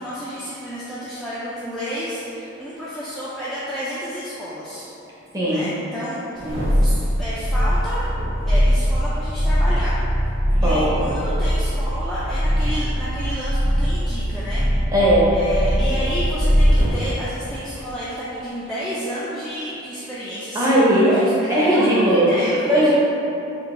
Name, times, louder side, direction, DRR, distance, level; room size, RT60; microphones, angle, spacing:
voice 1, 0.0-4.9 5.5-8.1 8.4-9.9 10.6-14.7 15.3-22.9, equal, ahead, -11 dB, 0.3 m, -31 dB
sound 1, 6.4-17.0 17.5-17.6, equal, 45° right, 1.4 m, -21 dB
voice 2, 10.6-11.1 14.9-15.4 20.5-22.3 22.7-22.9, equal, 15° right, -8 dB, 0.7 m, -18 dB
3.8 x 2.7 x 3.7 m, 3.0 s
head